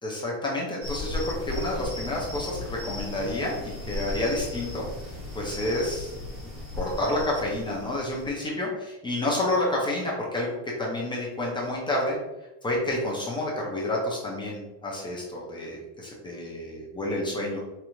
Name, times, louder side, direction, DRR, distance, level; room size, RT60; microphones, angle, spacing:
voice 1, 0.0-6.1 6.7-12.2 12.6-17.6, left 1 dB, 10° left, -4 dB, 0.5 m, -29 dB
sound 1, 0.8-8.3, left 2 dB, 30° right, 1.2 m, -36 dB
5.1 x 3.3 x 3.0 m, 1.0 s
cardioid pair, 175°, 47 cm